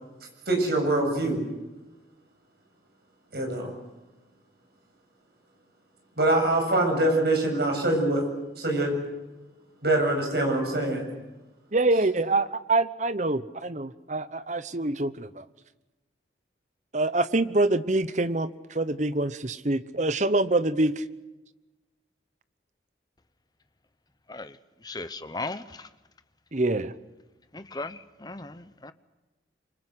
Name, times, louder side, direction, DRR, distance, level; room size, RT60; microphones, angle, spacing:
voice 1, 0.5-1.4 3.3-3.7 6.2-8.3 8.6-9.0 9.8-11.1, right 1 dB, 60° right, 3 dB, 7.6 m, -24 dB
voice 2, 11.7-15.4 16.9-21.0 26.5-26.9, right 2 dB, 40° right, 13 dB, 1.0 m, -25 dB
voice 3, 24.8-25.6 27.5-28.9, left 2 dB, 20° left, 12 dB, 1.0 m, -36 dB
26.0 x 24.5 x 8.1 m, 1.1 s
head